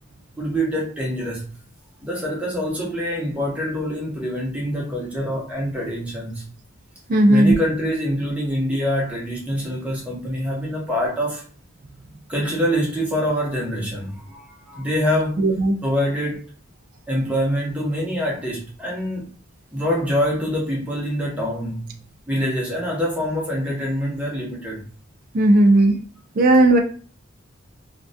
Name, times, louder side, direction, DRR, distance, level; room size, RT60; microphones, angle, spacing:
voice 1, 0.4-1.5 2.0-6.4 7.3-11.4 12.3-15.4 15.8-16.5 17.1-19.2 19.7-22.0 22.3-24.8, equal, 5° right, 0.7 m, -25 dB
voice 2, 7.1-7.5 15.4-15.8 25.3-26.0 26.4-26.8, right 1 dB, 45° right, 0.3 m, -15 dB
2.2 x 2.1 x 2.6 m
head